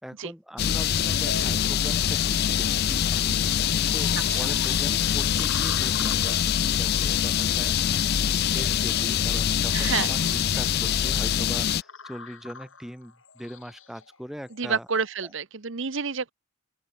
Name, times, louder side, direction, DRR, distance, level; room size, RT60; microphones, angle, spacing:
voice 1, 0.0-3.2 3.8-14.9, equal, ahead, 4.2 m, -41 dB
sound 1, 0.6-11.8, left 9 dB, 50° left, 0.4 m, -24 dB
sound 2, 1.0-15.2, left 4 dB, 65° left, 7.2 m, -44 dB
voice 2, 9.7-10.2 14.6-16.3, right 5 dB, 60° right, 1.0 m, -29 dB
open air
head